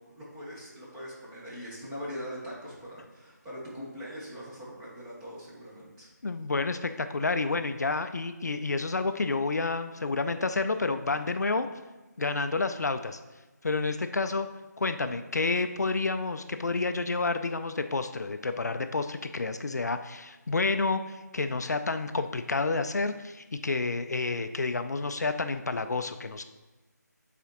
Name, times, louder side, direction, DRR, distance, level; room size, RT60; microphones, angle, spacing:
voice 1, 0.0-6.1, equal, 10° right, -7 dB, 1.0 m, -42 dB
voice 2, 6.2-11.7 12.2-13.2 13.6-14.5 14.8-26.4, left 3 dB, 65° left, 9 dB, 0.4 m, -29 dB
8.2 x 4.1 x 2.9 m, 1.2 s
figure-of-eight pair, 160°, 10 cm